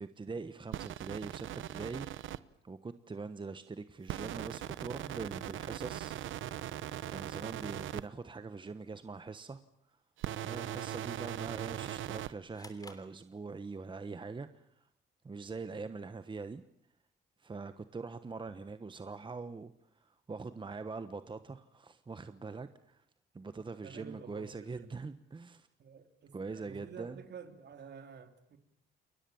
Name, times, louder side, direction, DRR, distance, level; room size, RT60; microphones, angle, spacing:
voice 1, 0.0-2.4 2.6-6.1 7.1-9.6 10.4-14.7 15.2-16.6 17.4-19.7 20.0-23.0 23.3-25.7 26.3-27.2, right 4 dB, 25° right, 1.2 m, -43 dB
sound 1, 0.7-2.4 4.1-8.0 10.2-12.3, right 13 dB, 75° right, 0.9 m, -40 dB
sound 2, 12.5-14.0, left 2 dB, 20° left, 3.2 m, -56 dB
voice 2, 23.8-24.9 25.8-28.6, right 6 dB, 60° right, 3.3 m, -50 dB
29.0 x 21.0 x 7.2 m
cardioid pair, 90°, 20 cm